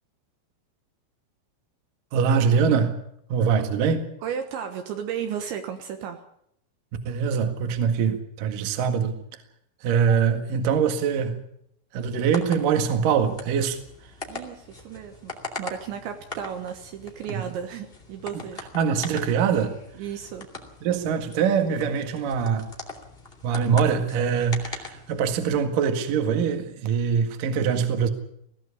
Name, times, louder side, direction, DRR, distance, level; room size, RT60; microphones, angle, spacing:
voice 1, 2.1-3.0 3.3-4.1 7.1-9.2 9.8-11.4 11.9-13.8 17.4-17.5 18.7-19.8 20.8-22.7 23.4-28.1, right 6 dB, 55° right, 2.8 m, -23 dB
voice 2, 4.2-6.2 14.3-18.6 19.9-20.5, right 8 dB, 70° right, 3.3 m, -34 dB
sound 1, 12.0-25.6, left 3 dB, 25° left, 1.3 m, -41 dB
20.0 x 15.5 x 8.5 m
omnidirectional pair, 5.9 m